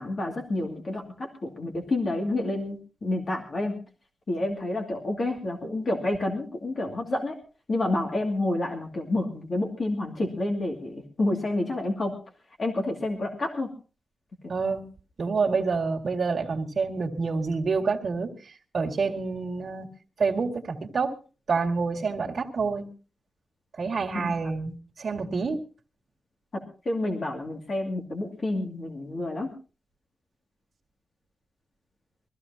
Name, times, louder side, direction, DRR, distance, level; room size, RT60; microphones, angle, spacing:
voice 1, 0.0-3.7 4.3-7.4 7.7-12.1 12.6-13.7 24.1-24.3 26.5-29.5, left 2 dB, 40° left, 2 dB, 2.4 m, -29 dB
voice 2, 14.5-14.9 15.2-19.9 20.2-21.1 21.5-22.9 23.7-25.6, right 4 dB, 50° right, 1 dB, 2.1 m, -28 dB
23.5 x 15.0 x 2.9 m, 0.35 s
wide cardioid pair, 165°, 0 cm